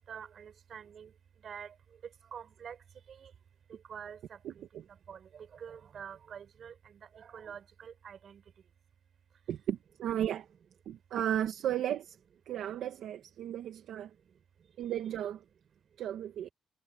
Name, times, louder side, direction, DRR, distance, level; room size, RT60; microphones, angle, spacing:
voice 1, 0.1-1.1 1.4-1.7 2.3-2.8 3.2-3.3 3.7-4.2 5.1-6.7 7.1-8.4, right 7 dB, 55° right, 7.2 m, -46 dB
voice 2, 4.4-4.8 9.5-10.5 10.8-12.2 12.4-14.1 14.8-15.4 16.0-16.5, right 11 dB, 75° right, 1.7 m, -34 dB
cardioid pair, 90°, 0 cm